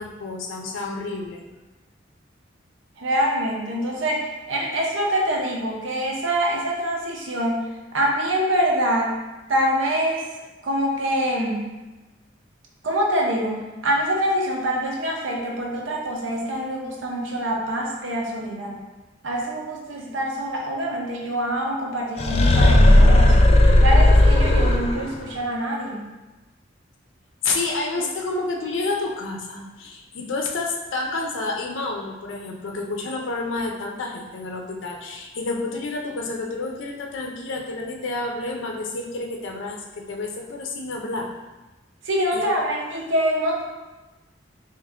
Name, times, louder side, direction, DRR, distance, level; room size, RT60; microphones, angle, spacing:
voice 1, 0.0-1.4 27.4-41.3 42.3-42.5, left 3 dB, 90° left, 1 dB, 0.5 m, -29 dB
voice 2, 3.0-7.6 7.9-9.1 9.5-10.2 10.6-11.7 12.8-18.8 19.2-23.5 23.8-26.1 42.0-43.6, equal, 85° right, -1 dB, 0.7 m, -25 dB
sound 1, 22.2-25.2, left 1 dB, 35° left, 0.3 m, -14 dB
3.4 x 2.8 x 3.5 m, 1.1 s
head